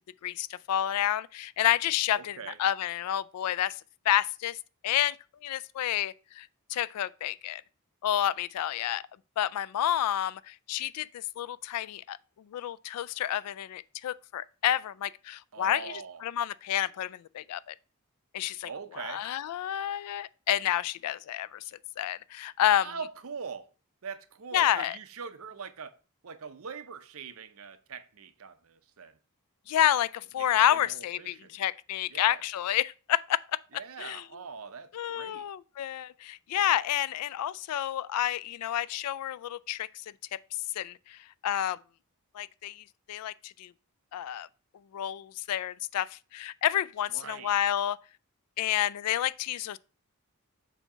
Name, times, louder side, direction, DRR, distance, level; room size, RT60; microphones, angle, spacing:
voice 1, 0.2-3.7 4.1-4.6 4.8-5.2 5.4-7.6 8.0-9.0 9.4-12.2 12.5-17.7 18.3-21.6 22.0-22.9 24.5-25.0 29.7-33.4 33.7-34.2 34.9-39.9 40.8-41.2 41.4-41.8 42.3-43.7 44.1-44.5 44.9-48.0 48.6-49.8, left 11 dB, 85° left, 0.3 m, -29 dB
voice 2, 2.1-2.6 15.5-16.2 18.6-19.2 22.8-23.7 24.0-25.9 26.2-29.1 30.4-31.5 32.1-32.4 33.7-35.5 47.1-47.5, right 5 dB, 65° right, 0.6 m, -42 dB
7.1 x 2.8 x 5.5 m
head